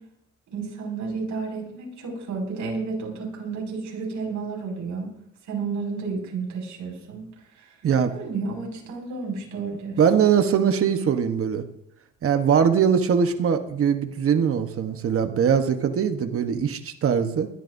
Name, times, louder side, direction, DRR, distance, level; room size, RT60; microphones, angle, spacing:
voice 1, 0.5-5.1 5.5-7.3 7.6-7.7 8.1-10.0, right 4 dB, 75° right, -1 dB, 6.0 m, -31 dB
voice 2, 10.0-11.6 12.2-17.5, right 7 dB, 45° right, 7 dB, 1.2 m, -21 dB
21.0 x 13.0 x 2.7 m, 0.78 s
cardioid pair, 100°, 30 cm